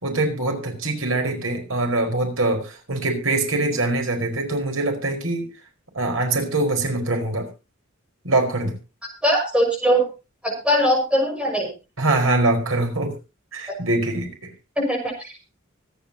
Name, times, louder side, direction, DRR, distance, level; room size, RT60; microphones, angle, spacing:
voice 1, 0.0-5.5 5.9-7.5 8.2-8.7 12.0-13.1 13.5-14.3, right 2 dB, 90° right, 4 dB, 4.8 m, -23 dB
voice 2, 9.2-10.1 10.4-11.7 14.8-15.3, equal, 5° right, 1 dB, 6.1 m, -21 dB
25.0 x 9.5 x 2.9 m, 0.29 s
head